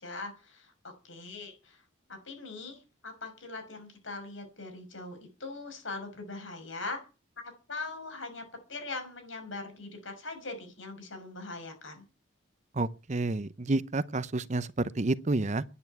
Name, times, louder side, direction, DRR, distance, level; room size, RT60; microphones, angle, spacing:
voice 1, 0.0-1.8 2.1-7.0 7.4-8.4 8.7-12.0, left 3 dB, 80° left, 6.1 m, -41 dB
voice 2, 12.7-15.6, right 2 dB, 35° right, 0.7 m, -29 dB
10.0 x 9.5 x 9.4 m
head